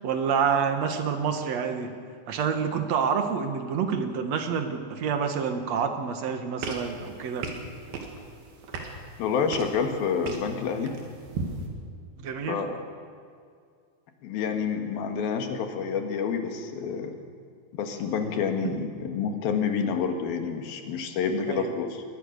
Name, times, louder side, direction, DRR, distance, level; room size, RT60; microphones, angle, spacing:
voice 1, 0.0-1.9 2.3-7.5 12.2-12.6 18.6-18.8 21.5-21.7, right 6 dB, 55° right, 7 dB, 2.4 m, -28 dB
sound 1, 6.6-11.7, right 3 dB, 90° right, 4.1 m, -37 dB
voice 2, 9.2-10.9 12.5-12.8 14.2-17.1 17.7-22.0, left 6 dB, 85° left, 5 dB, 3.5 m, -28 dB
22.5 x 20.0 x 6.7 m, 2.2 s
omnidirectional pair, 4.1 m